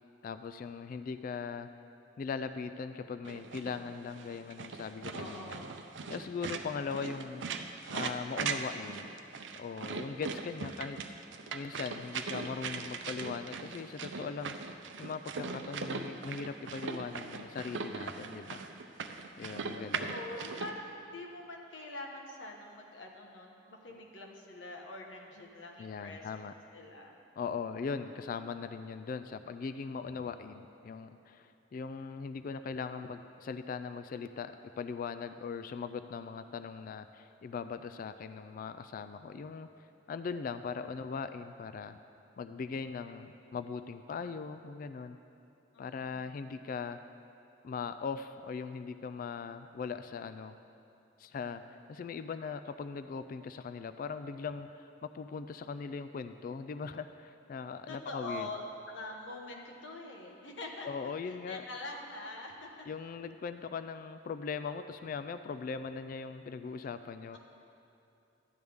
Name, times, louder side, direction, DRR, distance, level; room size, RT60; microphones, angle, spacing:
voice 1, 0.2-1.7 2.2-5.6 6.1-7.5 7.9-9.1 9.6-11.0 11.5-14.6 15.0-18.6 19.4-20.1 23.9-24.0 25.8-26.5 27.4-39.7 40.1-42.0 42.4-45.2 45.8-47.0 47.6-50.6 51.2-51.6 51.9-58.5 60.8-61.6 62.9-67.4, left 5 dB, 50° left, 10 dB, 0.3 m, -40 dB
sound 1, 3.2-20.7, right 5 dB, 90° right, 0.5 m, -40 dB
voice 2, 5.1-5.9 19.7-26.4 26.7-27.2 45.7-46.4 57.9-58.6 58.9-60.9 61.2-62.9 67.3-67.4, left 2 dB, 85° left, 0 dB, 1.2 m, -44 dB
12.5 x 9.4 x 3.5 m, 2.8 s
head